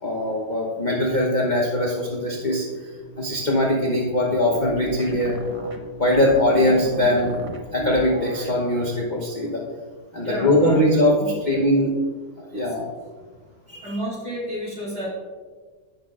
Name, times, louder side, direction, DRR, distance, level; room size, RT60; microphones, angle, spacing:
voice 1, 0.0-5.4 6.0-7.3 7.7-9.6 10.1-11.1 11.5-11.9 12.4-12.9 13.7-14.0, left 1 dB, 35° left, -3 dB, 0.9 m, -21 dB
sound 1, 2.9-8.6, right 2 dB, 65° right, 0.3 m, -36 dB
voice 2, 10.2-11.6 12.5-12.7 13.8-15.1, equal, 35° right, -6 dB, 2.9 m, -31 dB
15.5 x 6.0 x 2.5 m, 1.5 s
omnidirectional pair, 1.9 m